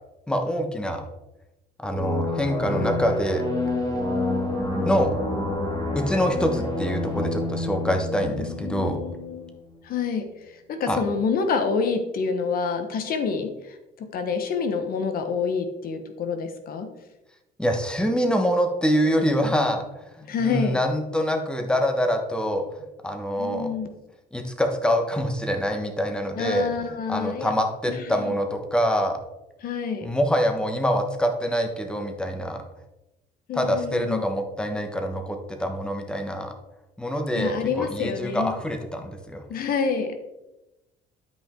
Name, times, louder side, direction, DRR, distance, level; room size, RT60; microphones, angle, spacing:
voice 1, 0.3-1.0 1.8-3.4 4.8-5.1 5.9-9.0 10.9-11.0 17.6-19.8 20.2-22.6 23.0-23.7 24.3-26.7 27.1-29.2 30.0-32.6 33.5-36.5 37.0-39.4, equal, 5° left, 4 dB, 1.3 m, -25 dB
sound 1, 1.9-9.3, left 2 dB, 20° left, 1.9 m, -28 dB
voice 2, 8.3-9.5 9.8-16.9 20.3-20.8 23.4-23.9 26.3-27.5 27.9-28.4 29.6-30.1 33.5-34.3 37.3-38.5 39.5-40.2, left 5 dB, 60° left, 7 dB, 1.1 m, -28 dB
12.0 x 5.4 x 3.8 m, 0.97 s
cardioid pair, 110°, 17 cm